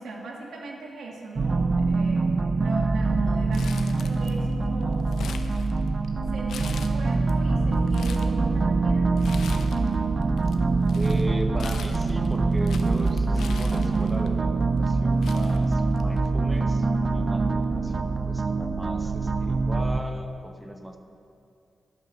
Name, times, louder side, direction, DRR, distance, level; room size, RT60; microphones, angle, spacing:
voice 1, 0.0-5.3 5.6-5.8 6.3-9.3 17.7-17.8, right 2 dB, 85° right, -1 dB, 1.7 m, -39 dB
sound 1, 1.4-20.0, right 3 dB, 40° right, 0.4 m, -24 dB
Crumpling crinkling, 3.5-4.5 4.8-6.1 6.5-7.3 7.7-8.3 9.2-10.0 10.2-14.3 14.9-15.0 15.2-16.3 16.6-16.7 17.6-17.9, left 6 dB, 90° left, 0.5 m, -41 dB
voice 2, 10.9-21.0, right 1 dB, 10° right, 4 dB, 0.9 m, -37 dB
12.0 x 5.4 x 6.4 m, 2.4 s
cardioid pair, 105°, 0 cm